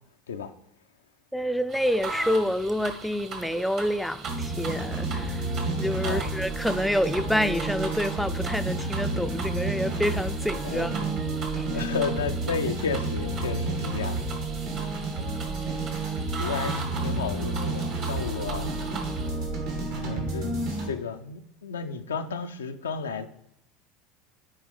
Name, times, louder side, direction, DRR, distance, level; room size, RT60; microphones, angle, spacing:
voice 1, 1.3-5.5 5.8-11.0 11.5-11.8 15.3-15.8, equal, ahead, 0.4 m, -28 dB
sound 1, 1.7-19.3, right 4 dB, 50° right, 1.5 m, -40 dB
sound 2, 4.2-20.9, right 2 dB, 75° right, 2.8 m, -30 dB
voice 2, 6.0-6.3 10.6-11.1 11.7-14.2 16.0-16.1 16.4-18.7 19.9-20.6 20.8-23.3, left 5 dB, 85° left, 0.5 m, -33 dB
8.4 x 4.6 x 3.6 m
hypercardioid pair, 80°, 0 cm